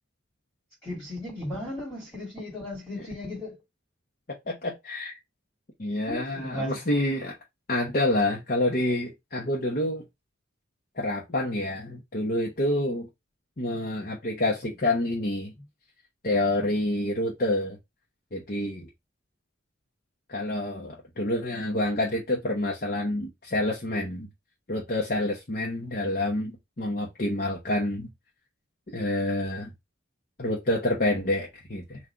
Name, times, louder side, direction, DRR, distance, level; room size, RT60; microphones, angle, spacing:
voice 1, 0.8-3.6 6.1-6.8, left 1 dB, 5° left, 2.1 m, -36 dB
voice 2, 4.3-5.1 5.8-7.3 7.7-10.0 11.0-13.1 13.6-15.5 16.2-17.8 18.3-18.9 20.3-24.3 24.7-28.1 28.9-29.7 30.4-32.0, left 1 dB, 45° left, 0.9 m, -28 dB
3.7 x 2.5 x 4.4 m
head